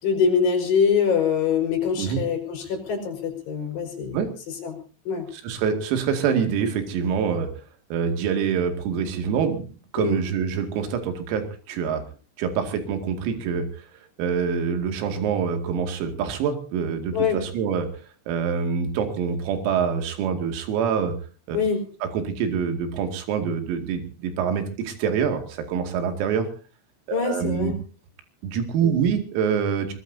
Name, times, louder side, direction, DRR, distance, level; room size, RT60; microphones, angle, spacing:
voice 1, 0.0-4.2 4.6-4.8 5.1-5.3 10.0-10.2 17.1-17.4 21.5-21.8 27.1-27.8 28.8-29.0, left 6 dB, 55° left, 3 dB, 6.1 m, -24 dB
voice 2, 5.3-7.5 7.9-9.7 9.9-12.0 12.4-13.9 14.2-21.1 21.5-21.6 22.0-26.5 27.1-27.7 28.4-29.9, right 7 dB, 90° right, 6 dB, 5.1 m, -25 dB
22.5 x 21.5 x 2.7 m, 0.37 s
omnidirectional pair, 6.0 m